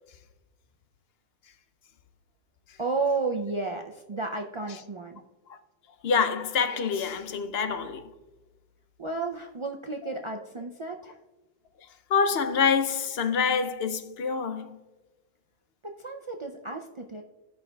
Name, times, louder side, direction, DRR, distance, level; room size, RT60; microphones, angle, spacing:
voice 1, 2.8-5.2 9.0-11.2 15.8-17.2, right 3 dB, 45° right, 0.4 m, -32 dB
voice 2, 6.0-8.1 12.1-14.8, left 6 dB, 70° left, 0.8 m, -26 dB
16.0 x 5.5 x 2.3 m
omnidirectional pair, 1.1 m